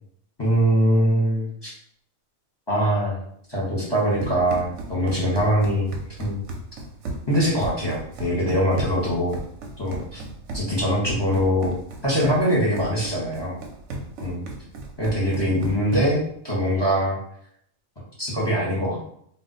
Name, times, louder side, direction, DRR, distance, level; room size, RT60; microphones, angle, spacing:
voice 1, 0.4-1.7 2.7-3.2 3.5-5.9 6.2-6.4 7.3-9.4 9.8-10.2 10.5-11.7 12.0-13.6 14.2-14.4 15.0-17.2 18.2-19.1, equal, 20° left, -6 dB, 0.8 m, -22 dB
Run, 3.9-16.3, right 2 dB, 65° right, 0.8 m, -35 dB
2.4 x 2.1 x 3.8 m, 0.67 s
omnidirectional pair, 1.5 m